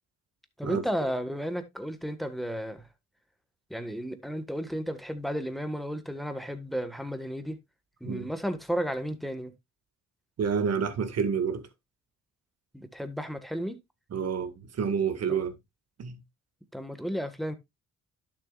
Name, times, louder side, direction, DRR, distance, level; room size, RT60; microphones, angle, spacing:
voice 1, 0.6-2.9 3.7-7.6 8.0-9.5 12.7-13.8 15.3-15.4 16.7-17.6, equal, ahead, 1.6 m, -33 dB
voice 2, 10.4-11.6 14.1-15.5 16.0-16.2, right 6 dB, 55° right, 2.0 m, -28 dB
11.5 x 7.1 x 2.4 m
cardioid pair, 90°, 30 cm